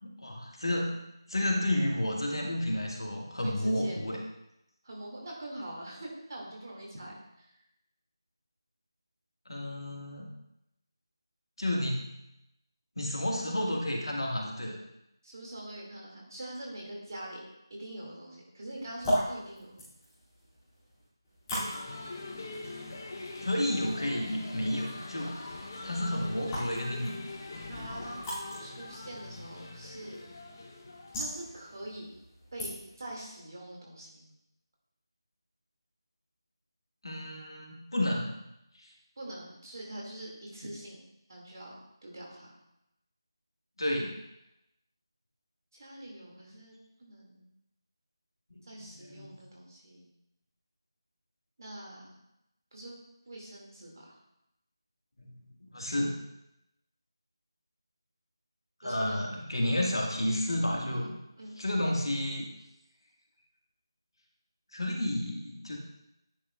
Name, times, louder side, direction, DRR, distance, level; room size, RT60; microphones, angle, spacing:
voice 1, 0.0-0.9 1.3-4.2 9.5-10.3 11.6-12.1 13.0-14.8 23.4-25.4 25.8-27.2 37.0-38.3 38.8-38.9 43.8-44.1 48.5-48.7 49.0-49.4 55.2-55.4 55.7-56.2 58.8-61.1 61.6-62.5 64.7-65.8, left 1 dB, 75° left, -1 dB, 1.7 m, -31 dB
voice 2, 3.4-4.0 4.8-7.5 15.2-17.4 17.7-19.7 27.7-28.2 28.6-30.2 31.2-32.1 32.5-34.3 39.2-41.0 41.3-41.7 42.0-42.5 45.7-47.5 48.6-50.1 51.6-52.1 52.7-54.2 58.8-59.3 60.9-61.1 61.4-61.6, right 1 dB, 45° right, -2 dB, 2.2 m, -44 dB
sound 1, 18.7-33.1, equal, 10° left, 2.5 m, -40 dB
sound 2, 21.6-31.9, left 2 dB, 40° left, 0.9 m, -43 dB
9.8 x 5.3 x 2.4 m, 0.84 s
figure-of-eight pair, 165°, 3 cm